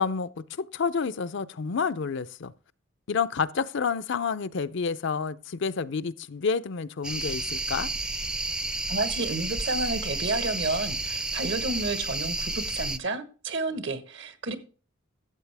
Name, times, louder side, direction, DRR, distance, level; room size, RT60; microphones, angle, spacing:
voice 1, 0.0-2.5 3.1-7.9, left 5 dB, 65° left, 0.5 m, -29 dB
sound 1, 7.0-13.0, right 2 dB, 5° right, 0.5 m, -31 dB
voice 2, 8.9-14.5, right 2 dB, 65° right, 1.3 m, -31 dB
13.0 x 8.0 x 3.4 m
head